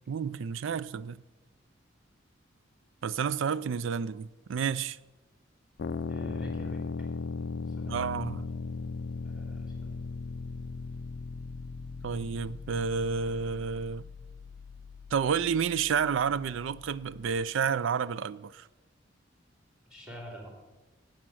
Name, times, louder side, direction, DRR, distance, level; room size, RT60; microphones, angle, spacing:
voice 1, 0.1-1.2 3.0-5.0 7.9-8.5 12.0-14.1 15.1-18.7, right 6 dB, 70° right, 0.4 m, -30 dB
sound 1, 5.8-17.4, left 4 dB, 55° left, 0.4 m, -38 dB
voice 2, 6.1-6.8 7.7-7.9 9.2-10.0 19.9-20.5, equal, 5° right, 3.2 m, -46 dB
12.0 x 8.5 x 6.2 m
head